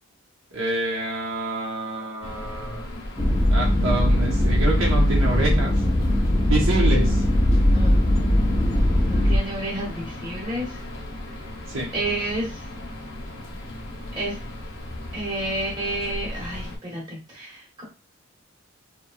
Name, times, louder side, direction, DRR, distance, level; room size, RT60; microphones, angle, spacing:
voice 1, 0.5-2.9 3.5-5.7 6.5-7.2 11.7-11.9, right 2 dB, 75° right, -2 dB, 0.8 m, -27 dB
sound 1, 2.2-16.8, left 1 dB, 70° left, 0.7 m, -36 dB
sound 2, 3.2-9.4, left 1 dB, 20° left, 0.3 m, -20 dB
voice 2, 7.7-8.2 9.1-10.9 11.9-12.7 14.2-14.4 15.1-17.8, right 1 dB, 20° right, -6 dB, 1.0 m, -30 dB
2.8 x 2.2 x 2.3 m, 0.32 s
head